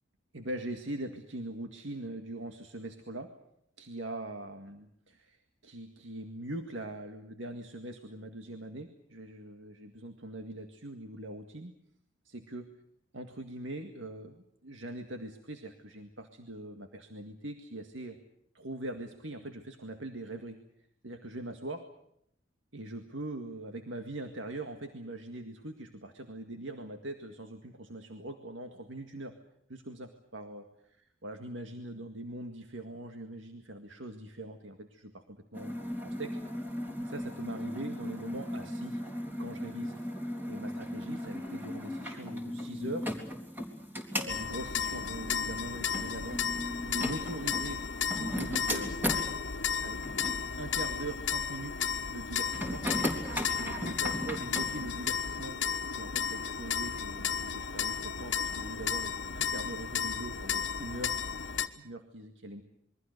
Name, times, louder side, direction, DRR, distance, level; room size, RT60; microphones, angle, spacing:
voice 1, 0.3-3.3 3.8-11.7 12.2-12.7 13.1-18.2 18.5-20.6 21.0-21.8 22.7-29.4 29.7-30.7 31.2-35.7 36.0-36.7 37.0-39.0 39.4-39.9 40.5-43.1 44.2-46.4 46.8-47.8 48.2-48.9 49.8-50.0 50.6-52.8 53.4-55.6 55.9-62.6, right 1 dB, 80° right, 6 dB, 2.0 m, -42 dB
sound 1, 35.5-49.3 50.0-50.4 52.5-54.9, equal, 10° right, 3.5 m, -37 dB
sound 2, 44.3-61.7, left 6 dB, 75° left, 1.4 m, -34 dB
27.5 x 23.0 x 6.7 m, 0.73 s
head